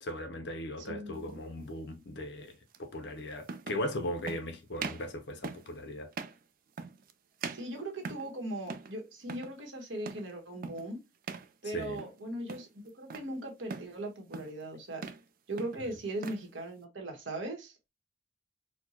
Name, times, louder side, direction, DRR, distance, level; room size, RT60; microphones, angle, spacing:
voice 1, 0.0-6.1 11.6-12.0, left 1 dB, 65° left, 0.7 m, -38 dB
voice 2, 0.9-1.4 7.5-11.0 11.6-15.1 15.5-17.9, right 1 dB, 85° right, 1.1 m, -39 dB
sound 1, 1.2-1.4 2.7-2.8 3.4-3.9 4.3-4.5 4.8-5.1 5.4-5.7 6.1-6.4 6.8-7.1 7.4-8.4 8.7-9.0 9.2-9.6 10.1-10.3 10.6-10.9 11.2-11.5 11.8-12.2 12.5-13.3 13.7-14.0 14.3-14.6 14.9-15.3 15.6-16.5, right 5 dB, 50° right, 0.4 m, -41 dB
4.3 x 2.2 x 2.8 m
head